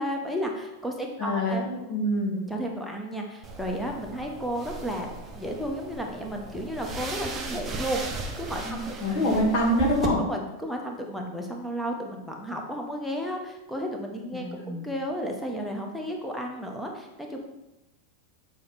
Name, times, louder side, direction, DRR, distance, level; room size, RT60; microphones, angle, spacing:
voice 1, 0.0-1.6 2.5-5.1 5.3-8.8 10.2-17.4, equal, ahead, 1 dB, 1.1 m, -33 dB
voice 2, 1.2-2.5 8.6-10.2 14.3-14.9, equal, 45° left, -3 dB, 1.9 m, -26 dB
sound 1, 3.4-10.1, right 3 dB, 20° right, 0.9 m, -37 dB
7.0 x 4.5 x 4.1 m, 0.94 s
figure-of-eight pair, 90°, 0 cm